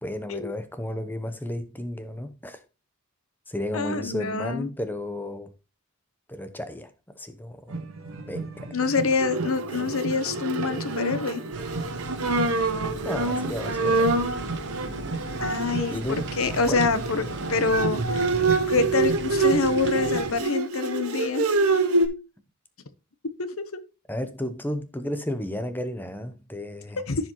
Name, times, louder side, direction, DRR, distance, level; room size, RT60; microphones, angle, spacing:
voice 1, 0.0-2.6 3.5-5.5 6.3-7.8 8.3-8.7 13.0-14.2 15.9-16.2 16.7-16.9 24.1-27.0, left 1 dB, 10° left, 0.8 m, -33 dB
voice 2, 3.7-4.7 8.7-11.4 15.4-17.2 17.5-18.3 18.7-21.5 23.4-23.8 27.1-27.3, left 4 dB, 75° left, 0.9 m, -26 dB
sound 1, 7.7-20.2, right 3 dB, 70° right, 1.5 m, -37 dB
Bowed string instrument, 9.1-22.1, right 3 dB, 90° right, 1.5 m, -26 dB
sound 2, 11.5-20.4, right 2 dB, 50° right, 1.0 m, -37 dB
14.5 x 4.9 x 3.0 m
head